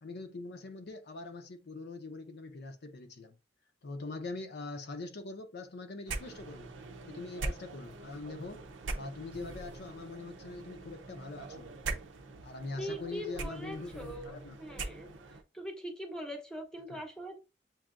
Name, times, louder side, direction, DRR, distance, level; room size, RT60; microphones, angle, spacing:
voice 1, 0.0-3.4 3.8-6.8 7.1-8.7 8.9-11.8 12.4-14.6 16.9-17.0, left 3 dB, 60° left, 0.6 m, -43 dB
sound 1, 6.0-15.4, right 3 dB, 90° right, 0.6 m, -42 dB
voice 2, 12.8-15.1 15.5-17.4, equal, 5° left, 0.8 m, -42 dB
7.2 x 2.7 x 2.4 m
head